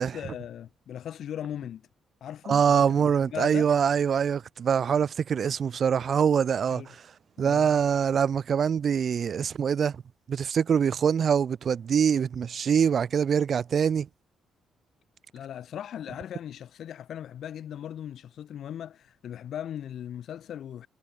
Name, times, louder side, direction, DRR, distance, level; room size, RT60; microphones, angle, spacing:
voice 1, 0.0-1.9 2.2-3.7 6.7-6.9 7.4-7.8 15.3-20.9, left 10 dB, 65° left, 5.3 m, -38 dB
voice 2, 2.5-6.8 7.4-10.0 10.3-14.1, right 7 dB, 50° right, 1.0 m, -24 dB
cardioid pair, 90°, 0 cm